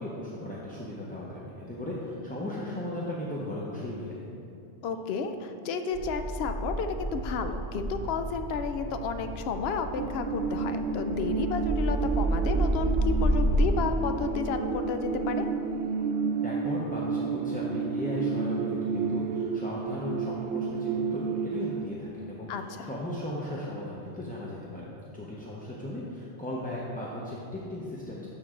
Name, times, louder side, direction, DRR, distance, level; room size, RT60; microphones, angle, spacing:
voice 1, 0.0-4.2 16.4-24.9 25.1-28.3, left 1 dB, 10° left, -6 dB, 0.6 m, -36 dB
voice 2, 4.8-15.4 22.5-22.9, left 5 dB, 70° left, 8 dB, 0.8 m, -32 dB
sound 1, 5.9-13.7, right 1 dB, 25° right, 0.6 m, -30 dB
sound 2, 10.0-21.8, right 5 dB, 75° right, 0.9 m, -31 dB
12.5 x 4.6 x 3.8 m, 2.7 s
omnidirectional pair, 1.2 m